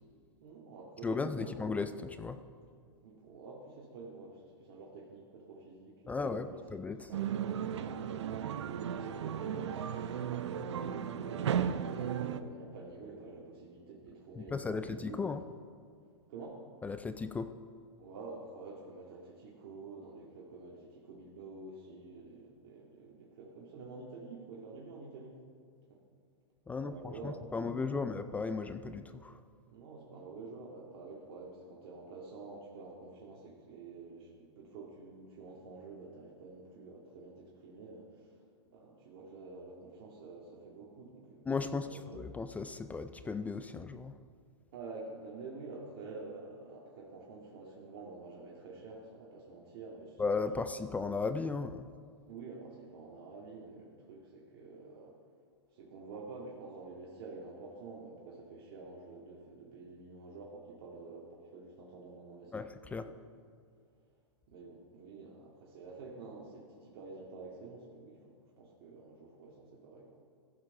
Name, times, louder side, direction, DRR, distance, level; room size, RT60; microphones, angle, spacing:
voice 1, 0.4-1.6 3.0-6.6 7.1-15.4 16.3-16.6 18.0-25.4 25.9-26.0 26.7-28.2 29.7-38.4 38.7-41.4 41.8-42.2 44.7-50.6 52.3-55.1 55.7-62.7 63.0-63.2 64.5-70.2, right 3 dB, 60° right, -4 dB, 2.0 m, -49 dB
voice 2, 1.0-2.4 6.1-7.1 14.4-15.4 16.8-17.5 26.7-29.4 41.5-44.1 50.2-51.9 62.5-63.1, left 4 dB, 10° left, 10 dB, 0.3 m, -36 dB
sound 1, 7.1-12.4, right 8 dB, 80° right, 0.6 m, -35 dB
15.0 x 5.9 x 5.4 m, 2.3 s
hypercardioid pair, 125°, 15 cm